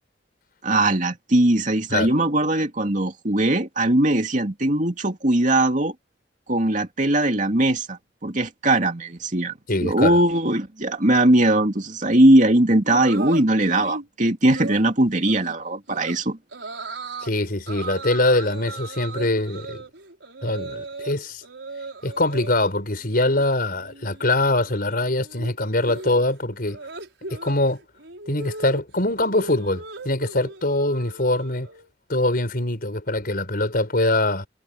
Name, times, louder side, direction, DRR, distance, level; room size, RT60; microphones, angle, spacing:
voice 1, 0.6-5.9 6.5-9.5 9.8-16.4, right 1 dB, 45° right, 2.7 m, -20 dB
voice 2, 9.7-10.2 17.2-19.8 20.4-21.4 22.0-26.8 27.3-27.8 28.3-31.7 32.1-34.5, left 2 dB, 55° left, 5.1 m, -23 dB
sound 1, 12.9-14.1 14.5-14.8 15.3-15.5 15.9-16.2 16.5-17.3 17.7-21.1 21.4-22.7 23.0-23.4 23.7-31.9, right 3 dB, 85° right, 5.5 m, -37 dB
head